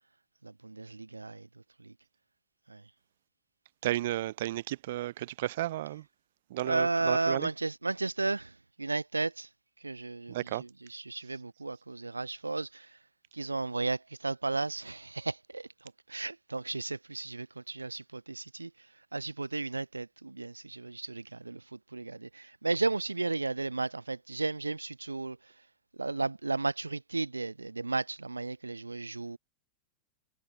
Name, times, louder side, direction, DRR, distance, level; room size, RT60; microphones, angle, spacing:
voice 1, 0.4-1.5 1.8-1.9 2.7-2.8 6.6-9.5 9.8-13.0 13.3-18.9 19.1-25.5 26.0-29.4, right 3 dB, 80° right, 0.7 m, -34 dB
voice 2, 3.8-6.0 6.5-7.5 10.3-10.6, right 15 dB, 55° right, 0.9 m, -33 dB
figure-of-eight pair, 90°, 0 cm